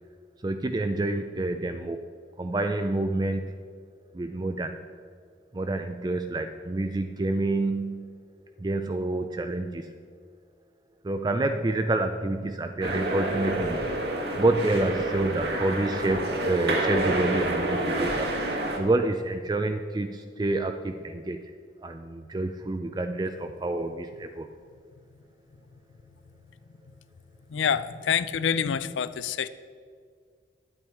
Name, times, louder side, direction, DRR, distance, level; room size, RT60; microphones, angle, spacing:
voice 1, 0.4-2.0 2.4-3.5 4.1-4.8 5.5-8.2 8.6-9.9 11.0-13.8 14.4-18.3 18.8-21.4 21.8-24.5, right 2 dB, 20° right, 6 dB, 0.3 m, -28 dB
sound 1, 12.8-18.8, right 1 dB, 55° right, 1.4 m, -28 dB
voice 2, 27.5-29.5, left 7 dB, 85° left, 15 dB, 0.4 m, -27 dB
10.5 x 8.7 x 4.6 m, 2.1 s
head